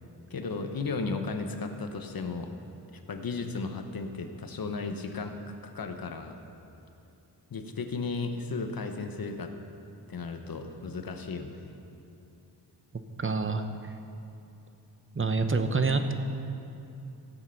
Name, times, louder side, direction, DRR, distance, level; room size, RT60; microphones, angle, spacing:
voice 1, 0.3-2.5 2.9-5.4 5.6-6.4 7.5-9.5 10.1-11.7, left 4 dB, 60° left, 6 dB, 1.2 m, -35 dB
voice 2, 13.2-13.6 15.1-16.1, right 4 dB, 30° right, 7 dB, 0.9 m, -26 dB
16.0 x 7.7 x 5.9 m, 2.8 s
wide cardioid pair, 85°, 40 cm